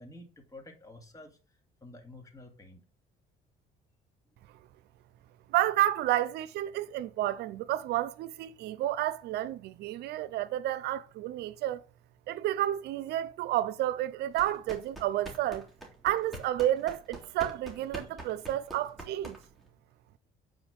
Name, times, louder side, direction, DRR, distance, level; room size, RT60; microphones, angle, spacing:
voice 1, 0.0-1.4 1.8-2.8, left 2 dB, 20° left, 2.6 m, -50 dB
voice 2, 5.5-11.8 12.3-15.7 16.0-19.4, right 13 dB, 75° right, 0.6 m, -30 dB
sound 1, 14.3-19.7, right 2 dB, ahead, 3.4 m, -45 dB
9.2 x 5.0 x 5.3 m
cardioid pair, 110°, 17 cm